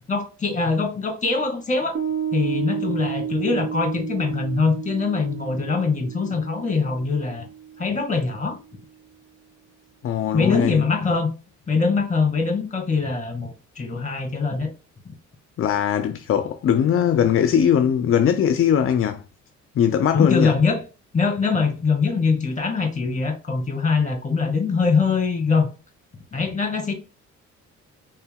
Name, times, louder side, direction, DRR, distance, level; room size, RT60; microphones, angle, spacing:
voice 1, 0.1-2.0 2.3-7.5 7.8-8.6 10.3-11.3 11.7-14.7 20.1-20.8 21.1-25.7 26.3-26.9, left 4 dB, 25° left, 1.8 m, -23 dB
Piano, 1.9-8.7, right 8 dB, 45° right, 1.0 m, -32 dB
voice 2, 10.0-10.8 15.6-19.2 19.8-20.5, left 8 dB, 45° left, 0.5 m, -20 dB
4.4 x 3.7 x 2.2 m
cardioid pair, 90°, 30 cm